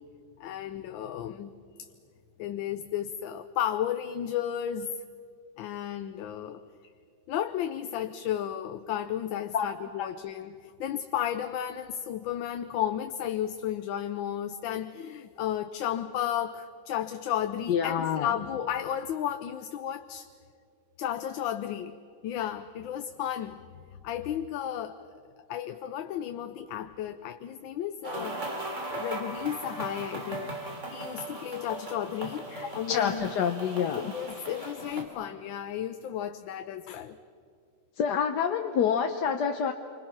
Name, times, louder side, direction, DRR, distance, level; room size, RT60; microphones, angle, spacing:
voice 1, 0.4-1.5 1.8-1.9 2.4-4.9 5.6-6.6 7.3-20.3 21.0-22.0 22.2-23.6 24.0-25.2 25.5-28.4 28.9-30.5 30.9-33.3 33.9-37.2, left 10 dB, 85° left, 9 dB, 1.5 m, -33 dB
voice 2, 17.7-18.3 32.5-34.1 38.0-39.7, left 7 dB, 65° left, 5 dB, 1.4 m, -27 dB
sound 1, 28.0-35.0, right 1 dB, 40° right, 3.4 m, -38 dB
28.0 x 25.0 x 5.9 m, 2.3 s
omnidirectional pair, 2.0 m